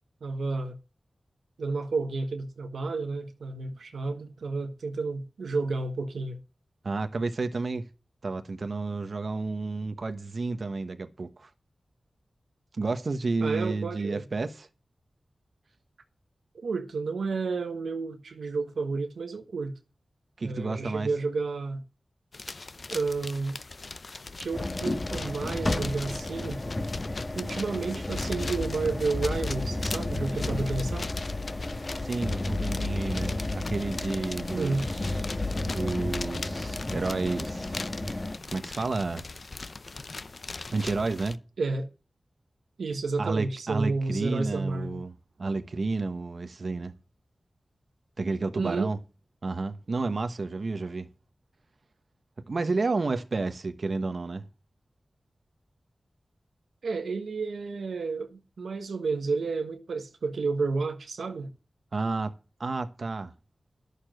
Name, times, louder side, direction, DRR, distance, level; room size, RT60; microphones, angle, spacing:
voice 1, 0.2-0.8 1.6-6.4 13.4-14.2 16.5-19.8 20.4-21.8 22.9-23.6 24.4-26.6 27.3-31.1 34.5-34.9 41.6-41.9 42.8-45.0 48.6-48.9 56.8-61.5, right 4 dB, 90° right, 1.3 m, -31 dB
voice 2, 6.8-7.9 8.2-11.5 12.7-14.7 20.4-21.1 32.0-35.2 35.6-37.8 38.5-39.2 40.7-41.4 43.2-45.1 45.4-46.9 48.2-49.0 49.4-51.1 52.5-54.5 61.9-63.3, right 3 dB, 60° right, 1.1 m, -31 dB
sound 1, 22.3-41.4, left 3 dB, 55° left, 0.7 m, -40 dB
sound 2, 24.5-38.4, left 2 dB, 35° left, 1.7 m, -32 dB
11.0 x 6.8 x 7.7 m
cardioid pair, 50°, 0 cm